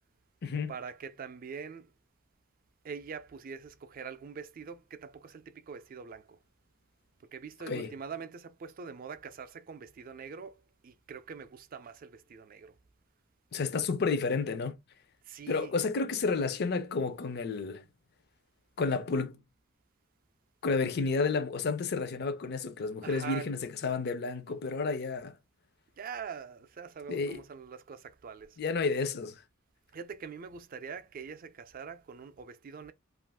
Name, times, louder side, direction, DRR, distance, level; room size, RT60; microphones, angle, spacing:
voice 1, 0.7-1.9 2.8-6.4 7.3-12.7 15.3-15.7 23.0-23.5 26.0-28.6 29.9-32.9, right 6 dB, 45° right, 0.4 m, -44 dB
voice 2, 13.5-14.8 15.5-17.8 18.8-19.4 20.6-25.3 27.1-27.4 28.6-29.3, left 4 dB, 50° left, 0.5 m, -31 dB
2.4 x 2.3 x 3.3 m
head